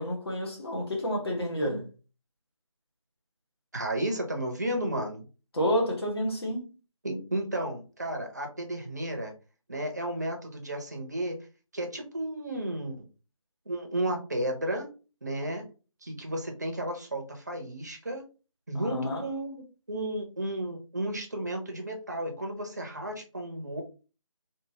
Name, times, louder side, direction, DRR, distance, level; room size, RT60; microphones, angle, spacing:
voice 1, 0.0-1.9 5.5-6.6 18.7-19.2, equal, 45° left, 1.3 m, -29 dB
voice 2, 3.7-5.2 7.0-9.3 9.7-11.4 11.7-13.0 13.7-14.9 15.2-15.6 16.0-18.2 18.7-23.8, right 1 dB, 30° right, 0.6 m, -33 dB
3.5 x 2.6 x 2.9 m
figure-of-eight pair, 165°, 17 cm